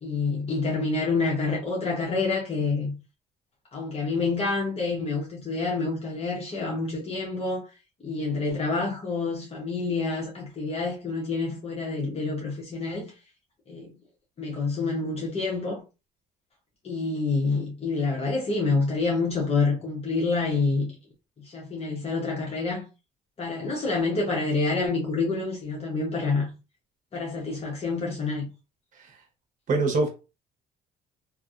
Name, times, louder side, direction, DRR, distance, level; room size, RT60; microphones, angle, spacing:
voice 1, 0.0-2.9 3.7-7.7 8.0-13.1 13.7-14.0 14.4-15.8 16.8-20.9 21.4-22.9 23.4-26.5 27.1-28.5, left 3 dB, 35° left, 1.0 m, -27 dB
voice 2, 29.7-30.1, right 3 dB, 50° right, 1.1 m, -24 dB
2.9 x 2.6 x 2.4 m
cardioid pair, 110°, 17 cm